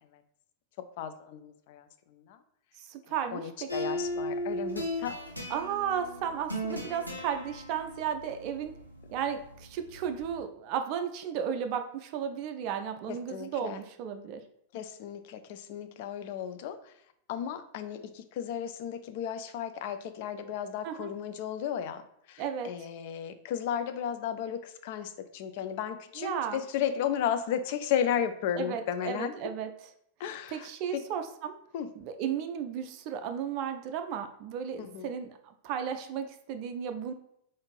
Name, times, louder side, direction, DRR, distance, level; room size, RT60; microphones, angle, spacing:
voice 1, 1.0-1.9 2.3-2.4 3.3-5.1 13.1-13.8 14.7-16.8 17.3-22.0 22.3-29.3 30.2-31.0 31.7-31.9 34.8-35.1, left 9 dB, 50° left, 9 dB, 0.3 m, -34 dB
voice 2, 2.9-3.8 5.5-8.7 9.1-14.4 20.8-21.1 22.4-22.7 26.2-26.6 28.5-29.7 30.3-31.5 31.9-35.3 35.6-37.1, right 8 dB, 40° right, 7 dB, 0.3 m, -34 dB
sound 1, 3.7-10.4, equal, 90° left, 0.7 m, -37 dB
4.0 x 2.5 x 3.2 m, 0.73 s
figure-of-eight pair, 90°, 0 cm